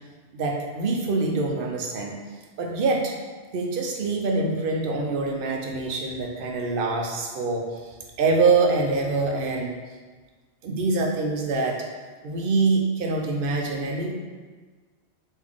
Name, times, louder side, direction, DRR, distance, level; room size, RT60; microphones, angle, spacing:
voice 1, 0.3-2.2 2.6-3.1 3.5-7.7 8.2-9.8 10.6-11.8 12.2-14.1, right 3 dB, 60° right, 1 dB, 0.7 m, -25 dB
3.5 x 2.6 x 3.5 m, 1.4 s
omnidirectional pair, 1.2 m